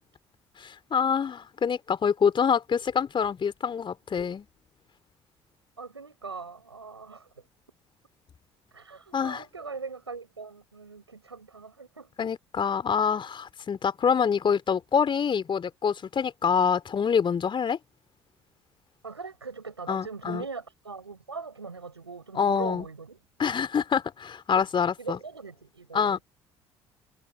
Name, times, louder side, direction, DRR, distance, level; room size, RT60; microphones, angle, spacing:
voice 1, 0.6-4.5 9.1-9.4 12.2-17.8 19.9-20.4 22.4-22.9 23.4-25.2 25.9-26.2, left 7 dB, 35° left, 3.4 m, -26 dB
voice 2, 5.8-7.3 8.7-12.1 19.0-23.2 25.0-26.2, right 4 dB, 90° right, 5.9 m, -40 dB
figure-of-eight pair, 50°, 14 cm